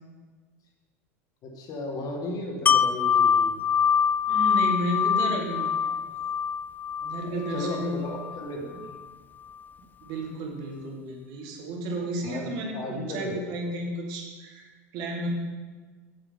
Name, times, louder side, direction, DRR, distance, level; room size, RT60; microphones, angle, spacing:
voice 1, 1.4-3.6 7.3-8.9 12.2-13.5, left 1 dB, 50° left, 0 dB, 2.3 m, -35 dB
Wind chime, 2.7-8.5 8.9-9.0, left 7 dB, 20° left, 0.4 m, -24 dB
voice 2, 4.3-5.9 7.0-7.9 10.0-14.7 14.9-15.3, right 1 dB, 60° right, 1 dB, 2.1 m, -33 dB
7.7 x 7.2 x 5.6 m, 1.4 s
hypercardioid pair, 90°, 8 cm